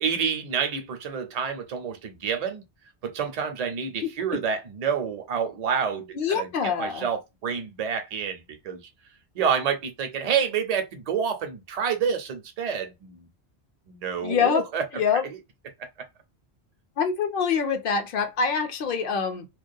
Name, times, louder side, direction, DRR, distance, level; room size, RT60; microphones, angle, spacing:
voice 1, 0.0-2.6 3.0-8.8 9.4-13.3 13.9-14.8 15.2-15.4, right 7 dB, 45° right, 0.5 m, -28 dB
voice 2, 6.1-7.0 14.2-14.6 14.9-15.2 17.0-19.5, left 6 dB, 60° left, 0.6 m, -25 dB
2.3 x 2.2 x 2.5 m
omnidirectional pair, 1.1 m